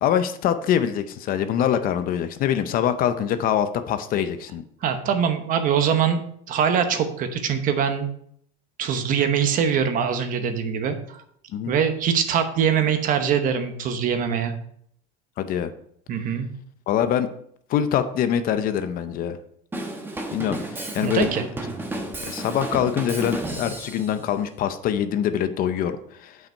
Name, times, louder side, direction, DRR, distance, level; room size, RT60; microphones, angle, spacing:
voice 1, 0.0-4.6 11.5-11.7 15.4-15.7 16.9-17.3 17.7-19.4 20.3-21.3 22.2-26.4, left 9 dB, 45° left, 10 dB, 0.6 m, -24 dB
voice 2, 4.8-6.2 6.5-8.1 8.8-11.2 11.7-14.5 16.1-16.5 21.0-21.4, right 7 dB, 45° right, 8 dB, 1.0 m, -23 dB
Drum kit / Drum, 19.7-24.1, right 1 dB, 10° right, 1.0 m, -32 dB
7.9 x 5.9 x 4.5 m, 0.67 s
cardioid pair, 145°, 20 cm